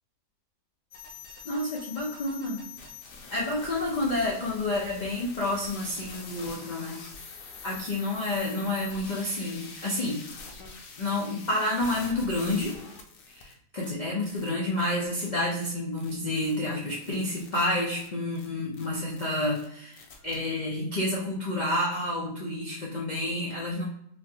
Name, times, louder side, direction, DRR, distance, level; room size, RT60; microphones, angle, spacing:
sound 1, 0.9-13.5 13.8-13.9 14.2-14.5 14.8-14.9 15.2-15.3 15.6-15.7 16.0-16.1 16.4-16.6 16.8-17.7 17.9-18.1 18.4-18.5 18.7-18.9 19.1-19.3 19.5-19.7 19.9-20.4, left 4 dB, 65° left, 0.9 m, -45 dB
voice 1, 1.4-2.6 3.3-7.0 7.6-10.2 11.0-12.8 13.3-23.9, left 1 dB, 85° left, -4 dB, 0.4 m, -29 dB
4.2 x 2.5 x 2.8 m, 0.72 s
omnidirectional pair, 1.7 m